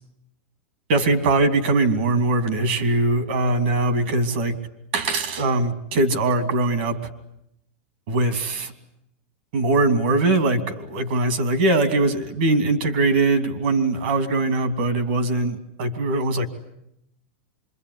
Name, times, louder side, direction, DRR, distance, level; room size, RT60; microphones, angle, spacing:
voice 1, 0.9-4.6 4.9-7.1 8.1-8.7 9.5-16.5, right 2 dB, 60° right, 9 dB, 2.9 m, -21 dB
26.0 x 23.0 x 9.8 m, 0.81 s
supercardioid pair, 165°, 7 cm